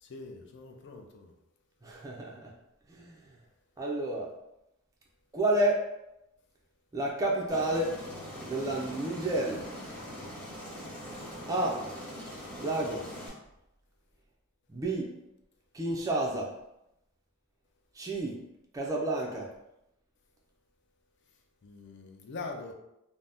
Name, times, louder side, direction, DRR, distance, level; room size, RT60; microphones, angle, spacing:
voice 1, 0.0-1.3 21.6-22.7, left 3 dB, 55° left, 3 dB, 0.4 m, -43 dB
voice 2, 1.8-2.5 2.9-3.3 3.8-4.3 5.3-5.9 6.9-8.0 8.4-9.7 11.5-11.8 12.6-13.2 14.7-15.2 15.7-16.6 17.9-18.4 18.7-19.5, right 1 dB, 15° right, -2 dB, 0.3 m, -30 dB
Aircraft, 7.5-13.3, equal, 5° left, 0.9 m, -42 dB
2.6 x 2.0 x 3.4 m, 0.87 s
head